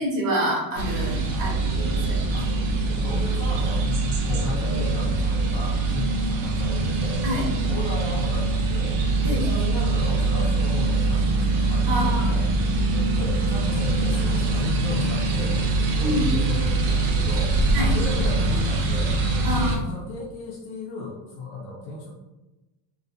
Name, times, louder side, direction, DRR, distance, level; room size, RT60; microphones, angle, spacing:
voice 1, 0.0-2.4 7.2-7.4 9.2-9.7 11.9-12.4 12.7-12.9 16.0-16.4 17.7-17.9 19.4-20.0, equal, 45° right, -3 dB, 1.0 m, -28 dB
sound 1, 0.8-19.8, right 3 dB, 70° right, 0.7 m, -23 dB
voice 2, 2.3-7.2 7.7-9.0 9.2-12.5 13.1-19.1 19.7-22.1, left 2 dB, 65° left, -4 dB, 0.6 m, -35 dB
2.3 x 2.2 x 2.6 m, 1.1 s
cardioid pair, 135°, 50 cm